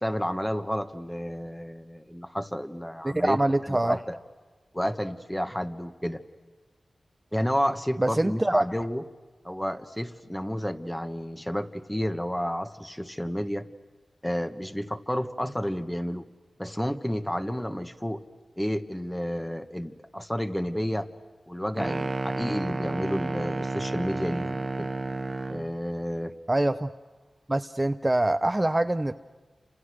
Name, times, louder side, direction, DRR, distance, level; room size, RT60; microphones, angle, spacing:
voice 1, 0.0-3.4 3.7-4.2 4.7-6.2 7.3-9.0 9.4-13.7 14.2-16.3 16.6-18.2 18.6-21.1 21.5-24.9 25.5-26.3, equal, 10° left, 9 dB, 1.6 m, -31 dB
voice 2, 3.0-4.0 8.0-8.7 26.5-26.9 27.5-29.1, right 1 dB, 25° right, 9 dB, 0.7 m, -24 dB
sound 1, 21.8-25.7, right 2 dB, 50° right, 1.0 m, -31 dB
30.0 x 27.0 x 6.5 m, 1.3 s
cardioid pair, 45°, 0 cm